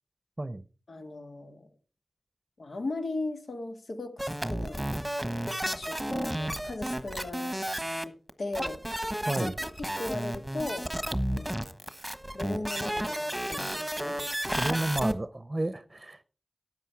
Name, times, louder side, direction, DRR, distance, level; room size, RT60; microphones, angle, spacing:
voice 1, 0.9-1.7 2.6-4.9 5.3-7.6 8.4-8.8 9.4-9.5 9.8-10.9 11.3-11.7 12.3-14.2, left 2 dB, 80° left, 1.8 m, -37 dB
sound 1, 4.2-15.1, right 1 dB, 5° right, 1.3 m, -32 dB
voice 2, 14.5-16.2, right 2 dB, 30° right, 0.7 m, -31 dB
12.5 x 8.9 x 4.7 m
wide cardioid pair, 50°, 0 cm